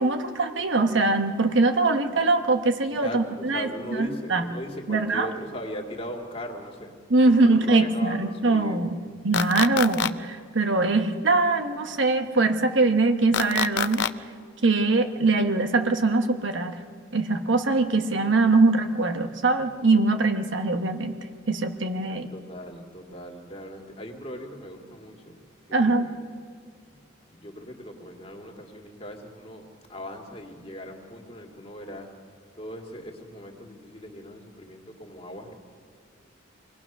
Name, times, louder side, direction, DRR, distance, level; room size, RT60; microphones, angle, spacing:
voice 1, 0.0-4.5 4.9-5.3 7.1-9.0 9.2-14.1 14.6-16.8 17.1-21.2 21.5-22.3 25.7-26.1, right 3 dB, 65° right, 6 dB, 1.2 m, -22 dB
voice 2, 3.0-6.9 7.3-8.8 22.1-25.4 25.7-26.2 26.9-32.1 32.5-35.5, equal, 30° left, 1 dB, 2.3 m, -39 dB
sound 1, 9.3-10.1 13.3-14.1, left 8 dB, 60° left, 0.5 m, -25 dB
24.5 x 19.0 x 6.1 m, 2.1 s
head